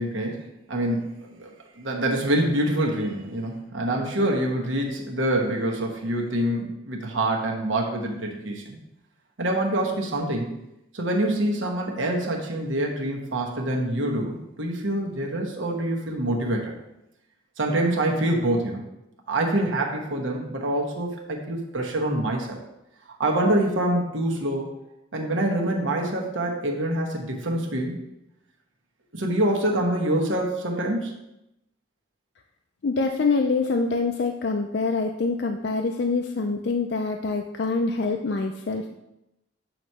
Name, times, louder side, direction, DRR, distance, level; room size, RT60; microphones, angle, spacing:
voice 1, 0.0-8.8 9.4-10.5 10.9-16.7 17.6-18.8 19.3-22.6 23.2-24.7 25.1-28.0 29.1-31.1, right 1 dB, 85° right, 0 dB, 1.1 m, -26 dB
voice 2, 32.8-38.9, left 4 dB, 60° left, 4 dB, 0.4 m, -25 dB
7.8 x 3.1 x 5.5 m, 0.88 s
head